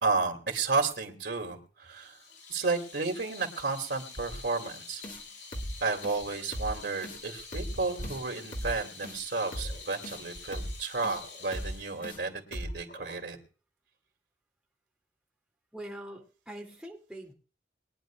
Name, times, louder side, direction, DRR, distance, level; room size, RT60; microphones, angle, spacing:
voice 1, 0.0-2.2 2.5-5.0 5.8-13.4, right 3 dB, 80° right, 3 dB, 2.7 m, -32 dB
Water tap faucet / Sink (filling or washing), 2.0-13.3, left 4 dB, 85° left, 5.6 m, -48 dB
sound 1, 5.0-5.2 5.5-5.7 6.0-6.2 6.5-6.7 7.0-7.2 7.5-7.7 8.0-8.2 8.5-8.7 9.0-9.2 9.5-9.7 10.0-10.2 10.5-10.7 11.0-11.2 11.5-11.7 12.0-12.2 12.5-12.7, equal, 45° left, 2.2 m, -37 dB
voice 2, 15.7-17.3, right 1 dB, 5° right, -2 dB, 2.6 m, -43 dB
23.0 x 10.5 x 2.4 m, 0.38 s
head